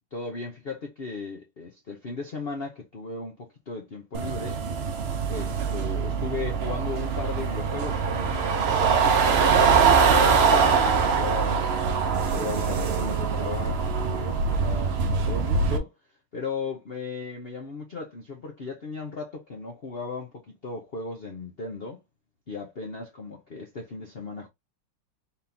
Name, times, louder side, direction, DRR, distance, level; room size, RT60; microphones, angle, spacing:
voice 1, 0.1-4.6 5.3-11.7 12.3-15.9 16.3-22.0 22.5-24.5, left 4 dB, 45° left, 0.8 m, -36 dB
sound 1, 4.1-15.8, right 5 dB, 65° right, 0.6 m, -23 dB
4.3 x 3.6 x 2.7 m
omnidirectional pair, 2.0 m